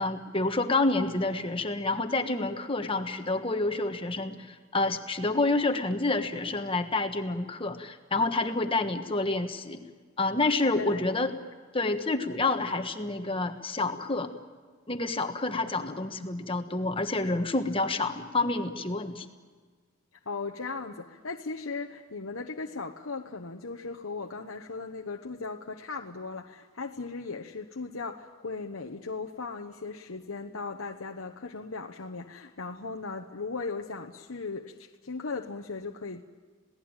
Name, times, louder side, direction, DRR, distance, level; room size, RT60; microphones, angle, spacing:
voice 1, 0.0-9.8 10.2-11.3 11.7-14.3 14.9-19.2, left 2 dB, 25° left, 6 dB, 1.4 m, -28 dB
voice 2, 20.3-36.2, left 4 dB, 80° left, 3 dB, 1.1 m, -37 dB
27.5 x 18.0 x 8.9 m, 1.5 s
head